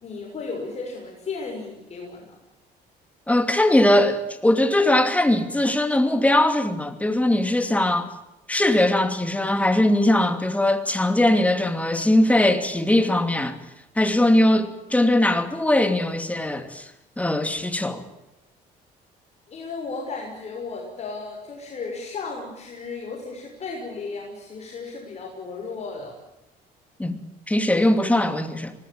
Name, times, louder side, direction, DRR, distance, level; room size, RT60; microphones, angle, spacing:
voice 1, 0.0-2.4 19.5-26.1, left 4 dB, 40° left, 6.4 m, -34 dB
voice 2, 3.3-8.1 8.5-13.6 14.0-16.9 17.2-18.0 27.0-27.2 27.5-28.7, left 1 dB, 10° left, 2.6 m, -20 dB
26.0 x 19.0 x 8.9 m
cardioid pair, 110°, 17 cm